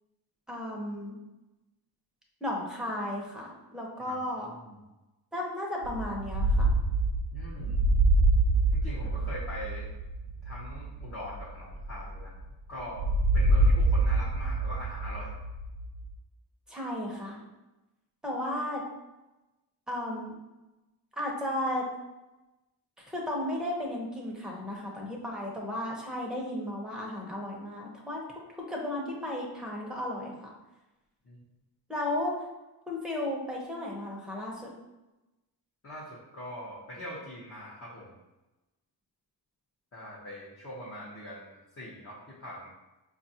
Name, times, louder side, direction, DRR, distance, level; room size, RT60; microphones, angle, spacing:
voice 1, 0.5-1.2 2.4-4.5 5.3-6.7 16.7-17.4 18.2-18.8 19.9-20.3 21.2-21.9 23.0-28.2 28.5-30.5 31.9-32.5 32.9-34.7, left 1 dB, ahead, -2 dB, 0.7 m, -34 dB
sound 1, 5.8-12.5 13.0-16.1, right 2 dB, 80° right, 0.5 m, -26 dB
voice 2, 7.3-7.8 8.7-9.9 10.4-12.4 12.7-13.1 13.3-15.4 31.2-31.4 35.8-38.1 39.9-42.7, equal, 35° left, -7 dB, 0.8 m, -42 dB
4.9 x 2.4 x 2.7 m, 1.0 s
wide cardioid pair, 125°, 40 cm